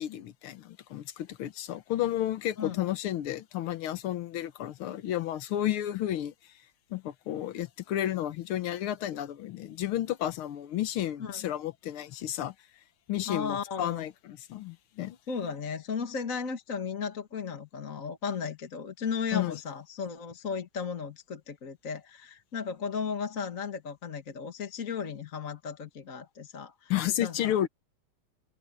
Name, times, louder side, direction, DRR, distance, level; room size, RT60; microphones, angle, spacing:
voice 1, 0.0-6.3 6.9-12.5 13.1-15.2 19.3-19.6 26.9-27.7, left 12 dB, 90° left, 1.9 m, -32 dB
voice 2, 13.3-14.1 15.3-26.9 27.2-27.6, left 6 dB, 40° left, 1.8 m, -35 dB
omnidirectional pair, 2.3 m